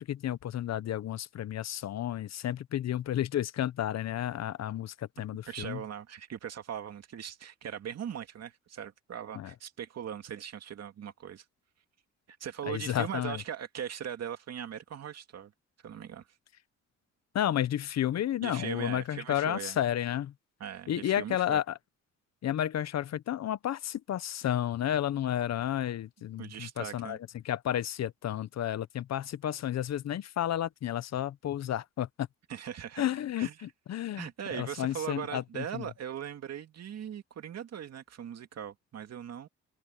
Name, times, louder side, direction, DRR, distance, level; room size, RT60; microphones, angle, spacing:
voice 1, 0.0-5.8 9.3-9.5 12.7-13.4 17.3-20.3 20.9-21.8 22.4-32.3 33.0-34.3 34.5-35.9, left 11 dB, 60° left, 0.9 m, -32 dB
voice 2, 5.5-11.4 12.3-15.5 15.8-16.3 18.4-19.8 20.6-21.6 26.4-27.2 32.5-33.0 33.4-33.5 34.1-39.5, right 9 dB, 55° right, 2.3 m, -40 dB
cardioid pair, 90°, 30 cm